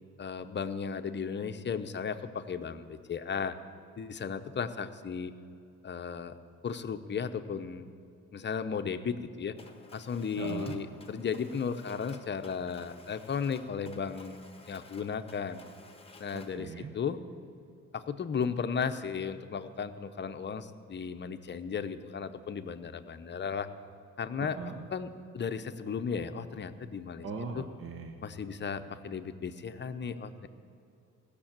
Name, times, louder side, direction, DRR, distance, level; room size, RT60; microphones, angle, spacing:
voice 1, 0.2-3.6 4.0-5.3 5.8-6.3 6.6-7.9 8.3-9.6 9.9-14.4 14.7-15.6 16.2-16.7 16.9-17.2 17.9-23.7 24.2-24.6 24.9-25.1 25.3-27.2 27.5-27.6 28.2-30.5, left 6 dB, 35° left, 9 dB, 0.8 m, -35 dB
Mechanisms, 9.6-16.7, left 3 dB, 20° left, 1.3 m, -54 dB
voice 2, 10.4-10.8 16.3-16.9 24.4-24.9 27.2-28.2, right 4 dB, 45° right, 4 dB, 1.0 m, -39 dB
16.0 x 6.8 x 8.8 m, 2.6 s
cardioid pair, 90°, 30 cm